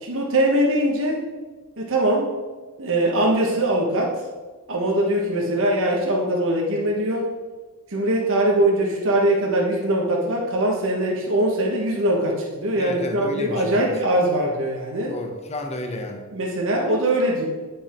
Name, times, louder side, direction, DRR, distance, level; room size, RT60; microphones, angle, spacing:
voice 1, 0.0-1.2 1.8-2.3 2.8-4.2 4.7-7.3 7.9-15.2 16.3-17.5, right 1 dB, 60° right, -1 dB, 1.3 m, -22 dB
voice 2, 12.8-13.9 15.1-16.2, left 1 dB, 30° left, 4 dB, 1.0 m, -31 dB
8.9 x 5.4 x 4.4 m, 1.3 s
head